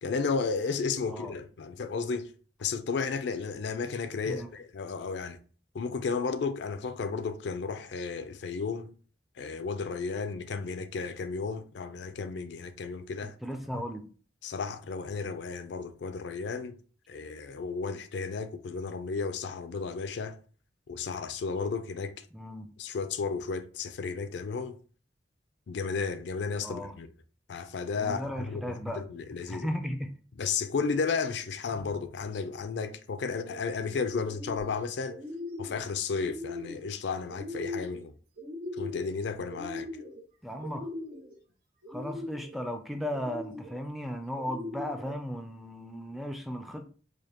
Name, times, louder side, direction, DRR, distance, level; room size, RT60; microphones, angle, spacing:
voice 1, 0.0-2.3 2.6-5.4 5.7-8.9 9.4-13.3 13.7-13.8 14.4-16.8 17.1-20.4 20.9-22.2 22.8-24.8 25.7-27.1 27.5-29.7 30.4-35.2 35.6-38.1 38.8-39.9, left 5 dB, 70° left, 0.4 m, -33 dB
voice 2, 13.2-14.1 22.3-22.7 26.6-26.9 28.0-29.0 29.5-30.1 40.4-40.9 41.9-46.8, equal, ahead, 0.4 m, -36 dB
sound 1, 33.3-33.7 34.1-34.8 35.1-35.8 36.2-36.9 37.3-38.0 38.4-39.2 39.5-40.2 40.6-41.3 41.8-42.6 43.1-43.8 44.3-45.1, left 2 dB, 55° right, 1.1 m, -40 dB
5.0 x 2.1 x 2.9 m
head